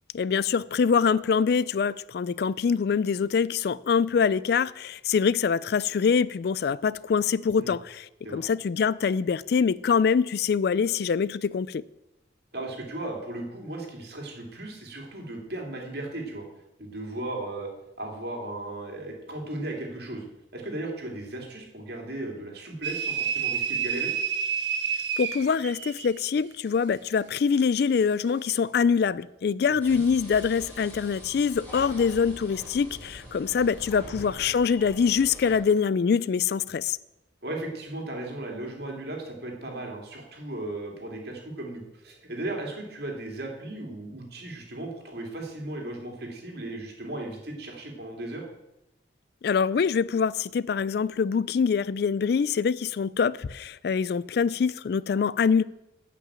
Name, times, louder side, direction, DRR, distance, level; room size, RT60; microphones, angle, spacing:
voice 1, 0.1-8.0 8.3-11.8 25.2-37.0 49.4-55.6, left 6 dB, 55° left, 0.3 m, -24 dB
voice 2, 12.5-16.4 16.8-17.7 18.0-20.2 20.5-24.1 29.7-30.0 33.5-33.6 37.4-48.4, right 2 dB, 55° right, 2.9 m, -36 dB
sound 1, 22.8-26.2, right 7 dB, 75° right, 1.1 m, -29 dB
sound 2, 29.8-35.6, equal, 10° left, 5.1 m, -44 dB
11.5 x 5.9 x 8.8 m
head